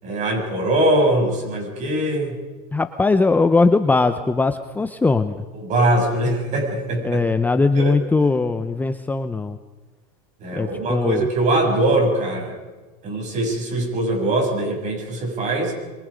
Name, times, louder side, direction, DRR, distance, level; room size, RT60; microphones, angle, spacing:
voice 1, 0.0-2.4 5.5-7.2 7.8-7.9 10.4-12.6 13.0-15.7, right 1 dB, 35° right, 2 dB, 7.6 m, -22 dB
voice 2, 2.7-5.4 7.0-9.6 10.6-11.2, left 3 dB, 10° left, 9 dB, 0.7 m, -20 dB
27.0 x 23.5 x 5.2 m, 1.3 s
supercardioid pair, 140°, 20 cm